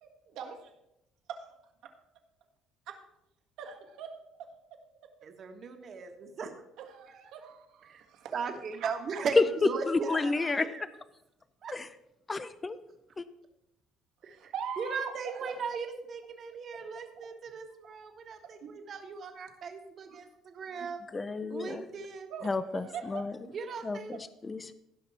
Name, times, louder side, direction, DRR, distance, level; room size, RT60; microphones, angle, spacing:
voice 1, 0.0-0.7 1.3-1.4 2.9-3.0 3.6-4.1 6.8-8.3 8.8-9.3 10.0-10.2 14.2-15.6 17.2-17.3 18.6-18.8 20.1-20.2 22.3-23.3, right 7 dB, 75° right, 3 dB, 1.7 m, -42 dB
voice 2, 5.2-6.5 7.9-8.0 8.3-10.8 11.6-11.7 14.2-21.0 21.5-22.3 23.5-24.1, right 5 dB, 45° right, 5 dB, 1.4 m, -38 dB
voice 3, 9.9-10.6 11.7-11.9 12.3-12.8 13.2-13.3 21.1-21.8 22.4-23.3 23.8-24.7, left 3 dB, 20° left, 13 dB, 0.5 m, -30 dB
16.0 x 5.8 x 4.2 m, 0.87 s
cardioid pair, 125°, 0 cm